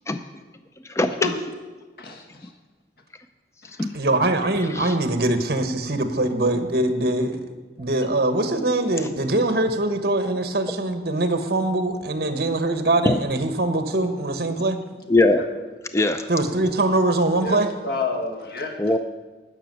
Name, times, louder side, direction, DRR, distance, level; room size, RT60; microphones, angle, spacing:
voice 1, 0.8-1.3 3.6-4.0 4.6-5.0 13.0-13.2 15.1-15.4 15.9-16.3 18.8-19.0, left 2 dB, 15° left, 8 dB, 0.4 m, -21 dB
voice 2, 2.0-2.5 3.6-3.7 15.3-15.5 17.4-18.8, left 3 dB, 60° left, 3 dB, 1.6 m, -29 dB
voice 3, 3.9-7.5 7.8-14.8 16.3-17.7, right 2 dB, 60° right, 8 dB, 1.2 m, -22 dB
13.0 x 6.1 x 9.2 m, 1.3 s
head